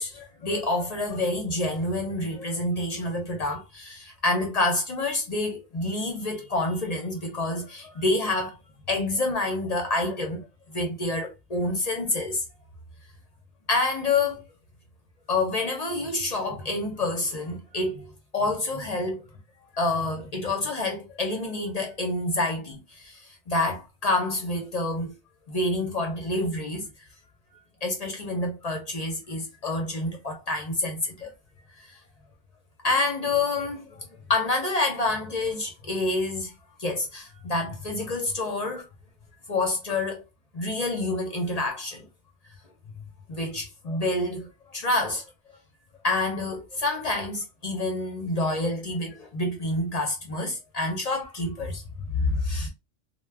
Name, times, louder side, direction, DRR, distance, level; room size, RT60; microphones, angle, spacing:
voice 1, 0.0-8.6 8.9-12.4 13.7-14.4 15.3-19.3 19.7-25.1 25.5-26.9 27.8-31.3 31.8-32.0 32.8-36.5 36.8-38.9 39.5-40.2 40.5-42.1 42.9-45.2 46.0-52.7, left 2 dB, 45° left, 0.6 m, -28 dB
2.2 x 2.0 x 3.3 m
omnidirectional pair, 1.2 m